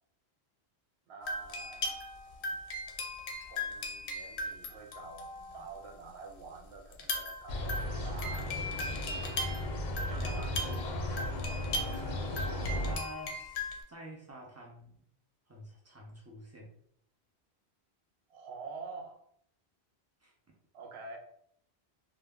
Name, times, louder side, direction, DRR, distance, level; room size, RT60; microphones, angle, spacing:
voice 1, 1.1-2.0 2.4-2.6 3.5-8.6 10.1-10.6 18.3-19.2 20.7-21.2, right 4 dB, 75° right, 2 dB, 0.8 m, -47 dB
sound 1, 1.3-5.8 6.9-13.8, left 1 dB, 85° left, 0.8 m, -38 dB
voice 2, 4.9-6.0 10.2-12.2 12.8-14.9 15.5-16.7 20.2-20.6, right 1 dB, 25° right, -2 dB, 0.3 m, -49 dB
sound 2, 7.5-13.0, left 1 dB, 55° left, 0.6 m, -35 dB
2.2 x 2.1 x 3.4 m, 0.69 s
omnidirectional pair, 1.1 m